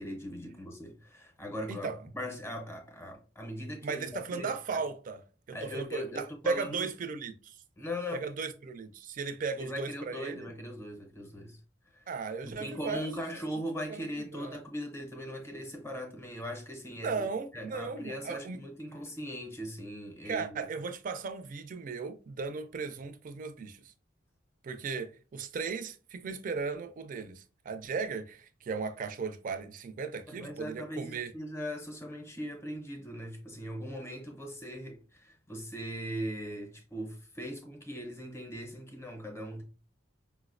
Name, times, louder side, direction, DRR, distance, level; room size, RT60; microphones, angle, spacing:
voice 1, 0.0-4.8 5.5-6.7 7.8-8.3 9.6-11.6 11.9-12.1 12.4-17.3 17.5-20.7 30.3-39.6, equal, 15° left, 0.6 m, -40 dB
voice 2, 3.8-5.2 5.5-7.6 8.1-10.5 12.1-14.6 17.0-18.6 20.2-23.9 24.6-31.3, right 4 dB, 45° right, 0.4 m, -36 dB
4.6 x 2.0 x 2.4 m
head